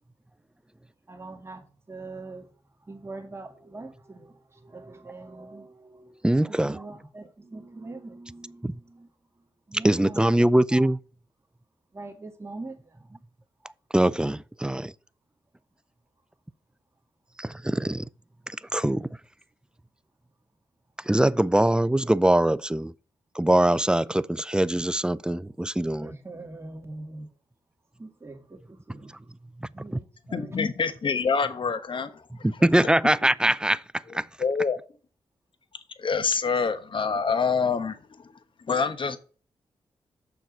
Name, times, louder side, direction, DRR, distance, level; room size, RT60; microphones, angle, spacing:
voice 1, 1.1-2.5 2.9-4.3 4.6-6.1 6.5-9.1 9.7-10.4 11.9-12.8 13.1-13.2 26.0-27.3 28.0-29.1 29.7-30.6 33.4-33.6, right 2 dB, 25° right, 2.2 m, -42 dB
voice 2, 6.2-6.8 8.6-8.8 9.8-11.0 13.9-14.9 17.4-18.1 18.7-19.1 21.1-22.9 23.3-26.1 29.6-30.0 32.4-33.8 34.1-34.3, right 1 dB, 10° right, 0.4 m, -22 dB
voice 3, 30.3-32.2 34.4-34.8 36.0-38.0 38.7-39.2, left 5 dB, 55° left, 1.1 m, -26 dB
7.1 x 5.8 x 6.4 m
cardioid pair, 60°, 10 cm